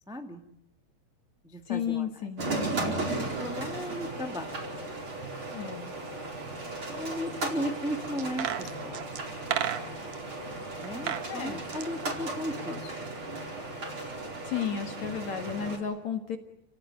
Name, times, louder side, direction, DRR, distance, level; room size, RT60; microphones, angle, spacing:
voice 1, 0.1-0.4 1.4-2.1 2.7-4.8 6.9-9.0 10.8-12.9, equal, ahead, 4 dB, 1.1 m, -36 dB
voice 2, 1.7-2.5 5.5-5.9 11.3-11.6 14.4-16.4, left 8 dB, 55° left, 6 dB, 2.5 m, -33 dB
sound 1, 2.4-15.8, right 2 dB, 30° right, 5.1 m, -36 dB
sound 2, 8.2-10.2 10.8-11.3 11.6-12.9 13.2-13.3, right 10 dB, 65° right, 1.9 m, -34 dB
29.5 x 17.5 x 9.2 m, 0.85 s
omnidirectional pair, 4.9 m